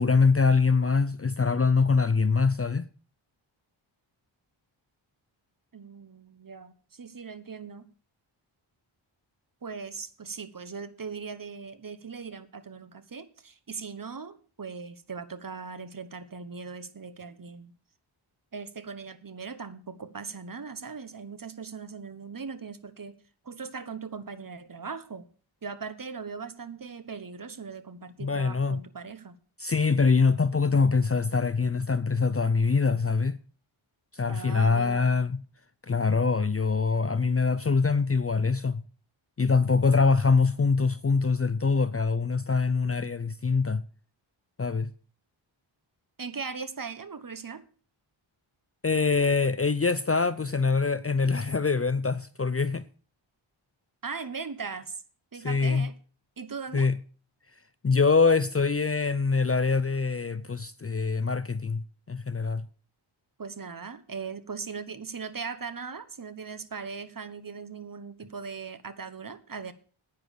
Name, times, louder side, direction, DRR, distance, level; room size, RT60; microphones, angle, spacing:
voice 1, 0.0-2.8 28.2-28.8 29.6-33.4 34.1-35.4 35.9-38.8 39.4-43.8 44.6-44.9 48.8-52.8 55.4-55.9 56.7-57.0 57.8-62.7, left 4 dB, 30° left, 0.6 m, -24 dB
voice 2, 5.7-7.9 9.6-17.7 18.5-23.1 23.4-25.3 25.6-29.4 34.3-35.1 46.2-47.6 54.0-55.0 55.3-55.9 56.4-56.9 63.4-69.7, right 5 dB, 45° right, 1.2 m, -39 dB
10.5 x 9.5 x 6.7 m
wide cardioid pair, 80°, 49 cm